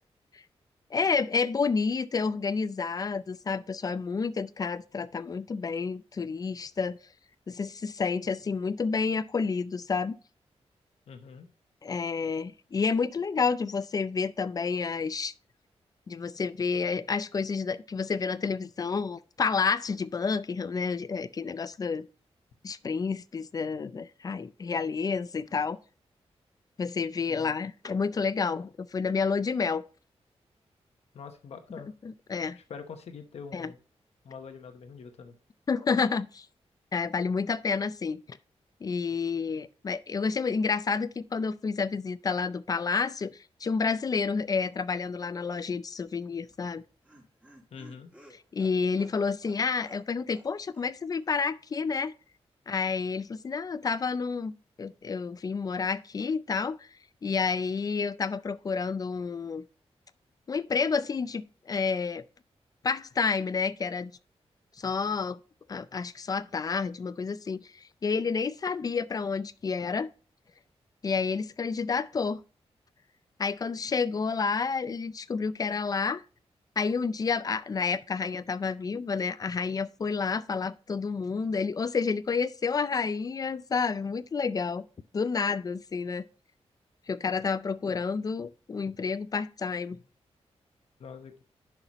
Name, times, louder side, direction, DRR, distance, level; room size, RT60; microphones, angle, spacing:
voice 1, 0.9-7.0 7.5-10.1 11.8-15.3 16.1-22.1 22.6-25.8 26.8-29.8 32.0-32.6 33.5-33.7 35.7-36.5 36.9-38.4 38.8-46.8 48.5-52.1 52.7-54.5 54.8-56.9 57.2-59.6 60.5-62.2 62.8-64.1 64.8-65.4 65.7-67.7 68.0-70.1 71.0-72.4 73.4-76.2 76.8-84.9 85.1-86.2 87.1-90.0, left 5 dB, 35° left, 0.4 m, -30 dB
voice 2, 11.1-11.5 27.3-27.5 31.1-31.9 32.6-33.8 34.2-35.3 47.7-48.1 91.0-91.4, left 5 dB, 70° left, 0.9 m, -44 dB
Laughter, 46.5-50.5 50.7-50.9 51.2-51.3, equal, 10° right, 1.5 m, -55 dB
10.5 x 5.8 x 3.0 m
wide cardioid pair, 165°, 11 cm